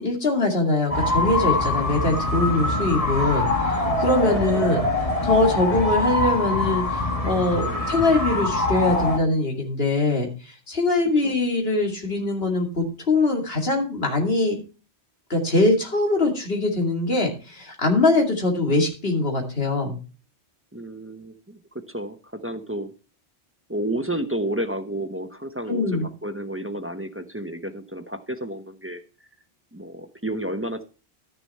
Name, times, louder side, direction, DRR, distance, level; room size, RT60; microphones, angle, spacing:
voice 1, 0.0-4.8 5.2-10.3 10.7-14.6 15.3-20.0 25.7-26.1, left 2 dB, 60° left, 1 dB, 2.8 m, -22 dB
sound 1, 0.9-9.2, left 2 dB, 35° left, 1.5 m, -24 dB
voice 2, 20.7-21.6 21.9-22.9 23.7-29.0 29.7-30.8, right 1 dB, 15° right, 7 dB, 0.8 m, -31 dB
13.0 x 6.8 x 4.3 m, 0.34 s
omnidirectional pair, 1.1 m